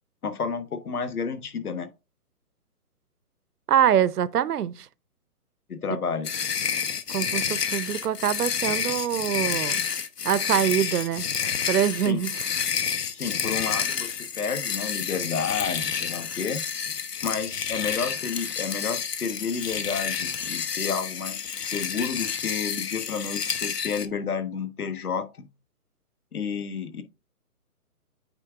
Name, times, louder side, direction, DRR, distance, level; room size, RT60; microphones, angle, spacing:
voice 1, 0.2-1.9 5.7-6.3 12.0-12.2 13.1-16.6 17.2-25.5 26.3-27.0, left 6 dB, 70° left, 1.3 m, -31 dB
voice 2, 3.7-4.9 7.1-9.8 10.2-11.3 11.7-12.4, right 10 dB, 80° right, 0.6 m, -24 dB
sound 1, 6.2-24.1, left 7 dB, 90° left, 1.1 m, -29 dB
9.0 x 3.6 x 3.5 m
hypercardioid pair, 175°, 46 cm